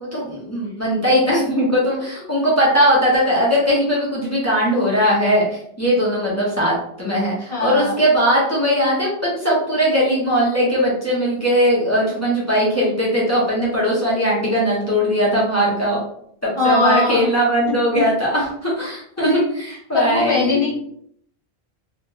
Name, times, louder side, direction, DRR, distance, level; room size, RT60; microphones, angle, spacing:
voice 1, 0.0-16.0 16.4-20.7, equal, 15° left, -6 dB, 0.9 m, -19 dB
voice 2, 7.5-8.0 16.6-17.3 19.2-19.5 19.9-20.7, left 3 dB, 65° left, -7 dB, 1.7 m, -21 dB
3.3 x 2.5 x 2.8 m, 0.67 s
omnidirectional pair, 1.1 m